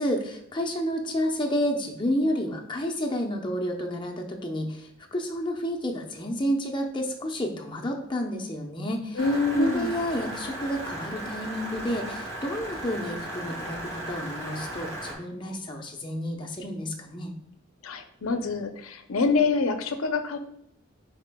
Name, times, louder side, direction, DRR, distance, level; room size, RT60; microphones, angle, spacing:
voice 1, 0.0-9.2 9.5-17.3, equal, 25° left, 1 dB, 0.7 m, -30 dB
voice 2, 9.2-10.0 17.8-20.4, left 3 dB, 85° left, 7 dB, 0.7 m, -26 dB
sound 1, 9.2-15.1, right 1 dB, 75° right, 2.5 m, -36 dB
9.8 x 4.3 x 2.3 m, 0.74 s
head